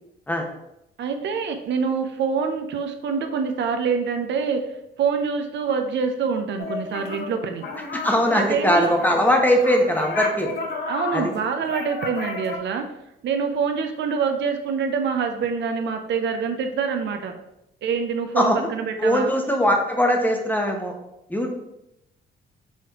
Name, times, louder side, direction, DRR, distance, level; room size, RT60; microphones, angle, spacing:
voice 1, 1.0-4.6 5.0-7.7 8.3-9.0 10.9-12.8 13.2-17.3 17.8-19.3, right 6 dB, 65° right, 6 dB, 0.5 m, -25 dB
sound 1, 6.6-7.4 7.6-12.6, left 4 dB, 55° left, 0.8 m, -32 dB
voice 2, 7.9-10.6 11.1-11.2 18.3-18.7 19.0-20.9 21.3-21.5, equal, 10° left, 2 dB, 0.8 m, -20 dB
5.5 x 3.1 x 2.9 m, 0.85 s
cardioid pair, 90°, 20 cm